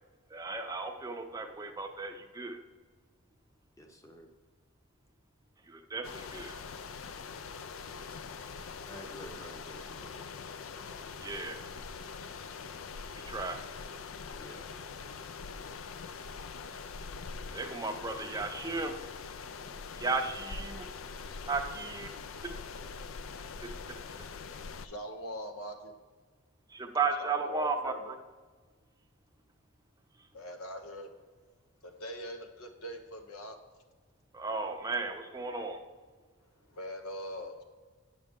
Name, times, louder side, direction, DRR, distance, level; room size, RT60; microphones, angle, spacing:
voice 1, 0.3-2.6 5.6-6.6 11.2-11.6 13.1-13.6 17.5-19.0 20.0-20.9 21.4-22.1 22.4-22.5 23.6-23.7 26.7-28.2 30.2-30.3 34.3-35.8, right 4 dB, 15° right, 5 dB, 0.5 m, -35 dB
voice 2, 3.8-4.3 8.9-10.1 14.4-14.7, equal, 15° left, 4 dB, 0.8 m, -49 dB
sound 1, 6.0-24.9, left 5 dB, 65° left, 0.4 m, -43 dB
voice 3, 24.8-25.9 27.2-28.0 30.3-31.1 31.8-33.6 36.7-37.6, equal, 90° left, 5 dB, 1.1 m, -42 dB
8.9 x 6.5 x 3.6 m, 1.4 s
head